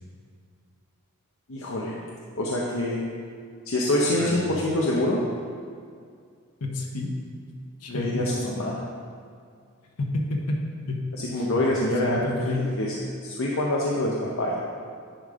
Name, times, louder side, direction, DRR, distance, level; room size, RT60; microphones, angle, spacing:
voice 1, 1.5-2.0 2.4-3.0 3.7-5.2 7.9-8.8 11.1-14.6, left 1 dB, 60° left, -4 dB, 0.7 m, -26 dB
voice 2, 4.2-4.5 6.6-7.2 7.8-8.3 10.0-11.5 12.0-12.7, left 2 dB, 85° left, 0 dB, 0.9 m, -30 dB
10.0 x 5.0 x 3.7 m, 2.2 s
head